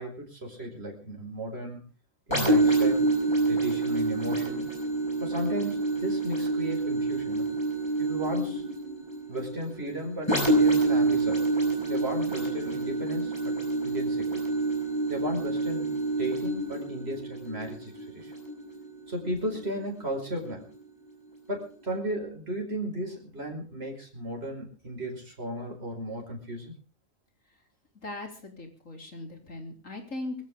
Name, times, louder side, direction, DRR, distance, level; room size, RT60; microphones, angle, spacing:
voice 1, 0.0-1.9 2.3-3.1 3.5-4.7 5.2-7.5 8.0-8.7 9.3-11.5 11.9-13.5 13.8-14.4 15.1-18.3 19.1-20.7 21.5-26.7, equal, 55° right, 0 dB, 5.4 m, -35 dB
sound 1, 2.3-19.8 20.4-20.5, right 2 dB, 20° left, 7.9 m, -27 dB
voice 2, 28.0-30.4, left 2 dB, 90° left, 3 dB, 4.3 m, -39 dB
23.5 x 15.5 x 3.7 m, 0.38 s
omnidirectional pair, 1.3 m